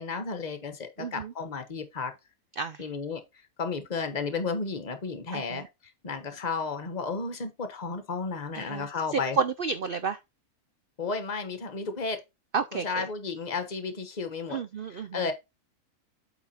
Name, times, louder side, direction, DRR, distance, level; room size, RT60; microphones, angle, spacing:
voice 1, 0.0-2.1 2.8-3.2 3.6-5.6 6.0-9.4 11.0-12.2 12.7-14.6 15.1-15.3, left 4 dB, 30° left, 1.2 m, -33 dB
voice 2, 1.0-1.3 2.6-2.8 5.3-5.6 8.5-10.2 12.5-13.0 14.5-15.3, right 5 dB, 70° right, 0.5 m, -31 dB
8.2 x 4.0 x 4.3 m
omnidirectional pair, 1.6 m